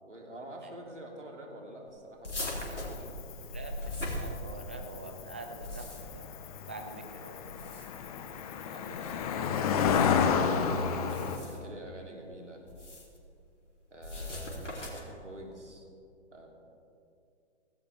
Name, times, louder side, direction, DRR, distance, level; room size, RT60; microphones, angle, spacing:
voice 1, 0.0-3.1 8.7-10.0 10.4-12.6 13.9-15.9 16.3-16.5, right 1 dB, 90° right, 0 dB, 3.1 m, -47 dB
sound 1, 2.2-4.9 5.4-6.3 7.4-8.1 8.9-9.2 11.0-11.7 12.7-13.2 14.0-15.2, left 1 dB, 85° left, 3.2 m, -39 dB
Cricket, 2.5-11.4, left 6 dB, 30° left, 1.0 m, -31 dB
voice 2, 3.5-6.4 6.6-7.5 10.8-11.3 11.5-11.7, right 2 dB, 10° right, 4 dB, 0.3 m, -46 dB
16.5 x 16.5 x 3.5 m, 2.5 s
figure-of-eight pair, 125°, 35 cm